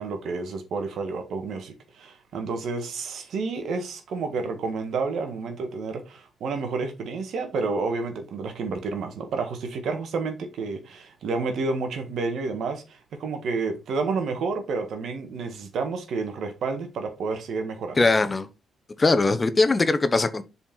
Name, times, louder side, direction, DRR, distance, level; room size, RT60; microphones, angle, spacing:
voice 1, 0.0-18.0, right 4 dB, 65° right, 1.7 m, -30 dB
voice 2, 18.0-18.5 19.0-20.4, left 3 dB, 30° left, 1.0 m, -21 dB
7.2 x 4.6 x 4.4 m
hypercardioid pair, 45°, 0 cm